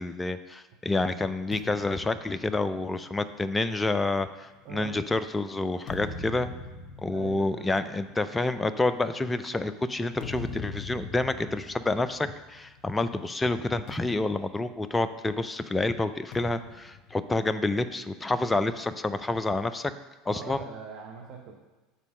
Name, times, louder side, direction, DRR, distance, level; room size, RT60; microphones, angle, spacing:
voice 1, 0.0-6.5 7.0-19.9 20.3-20.6, left 2 dB, 15° left, 11 dB, 0.4 m, -28 dB
sound 1, 1.5-5.1 5.6-13.0 13.3-13.5 13.9-15.5 16.3-18.1, left 4 dB, 55° left, 0.9 m, -44 dB
voice 2, 4.6-5.0 7.1-7.7 20.3-21.6, right 5 dB, 60° right, -1 dB, 0.9 m, -42 dB
6.7 x 4.1 x 6.3 m, 1.2 s
hypercardioid pair, 80°, 0 cm